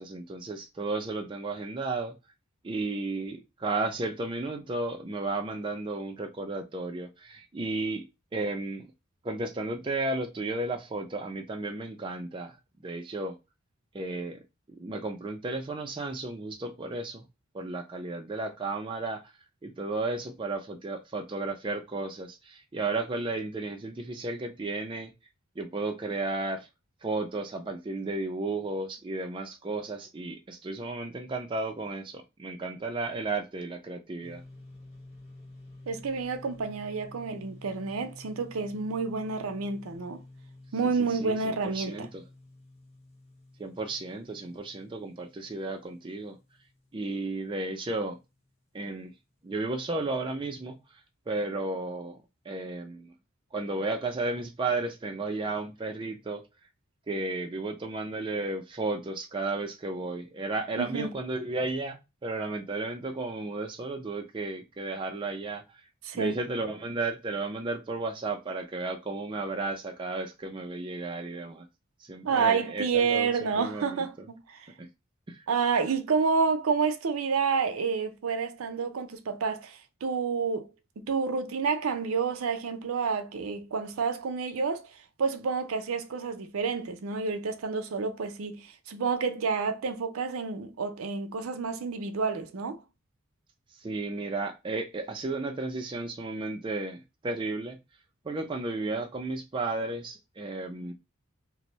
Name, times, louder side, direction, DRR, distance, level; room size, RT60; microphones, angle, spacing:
voice 1, 0.0-2.1 2.6-8.0 8.3-8.9 9.2-12.6 12.8-13.4 13.9-14.4 14.8-17.3 17.5-19.3 19.6-25.1 25.6-26.7 27.0-34.4 41.2-42.2 43.6-46.4 46.9-48.2 48.7-49.1 49.4-50.8 51.3-52.2 52.5-53.1 53.5-56.4 57.1-65.6 66.1-71.7 72.0-74.3 74.8-74.9 75.3-75.4 93.8-97.8 98.2-100.9, right 2 dB, 25° right, 0.4 m, -33 dB
sound 1, 34.2-47.7, left 2 dB, 30° left, 1.1 m, -51 dB
voice 2, 35.9-40.2 40.7-42.1 60.8-61.1 66.0-66.3 72.2-74.7 75.5-80.7 81.0-84.9 85.2-92.8, right 5 dB, 90° right, 0.5 m, -29 dB
2.6 x 2.0 x 3.0 m
head